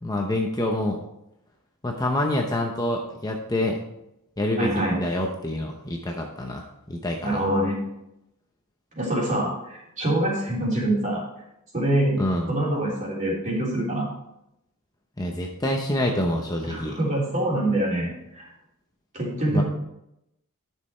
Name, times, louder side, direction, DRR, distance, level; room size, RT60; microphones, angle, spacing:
voice 1, 0.0-1.0 1.8-3.8 4.4-7.4 12.2-12.5 15.2-17.0 19.5-19.6, left 1 dB, 15° left, 1 dB, 0.8 m, -27 dB
voice 2, 4.6-5.0 7.2-7.8 8.9-11.2 11.7-12.1 12.5-14.1 16.6-18.4 19.1-19.6, right 1 dB, 35° right, -4 dB, 3.3 m, -25 dB
10.5 x 6.5 x 4.4 m, 0.84 s
head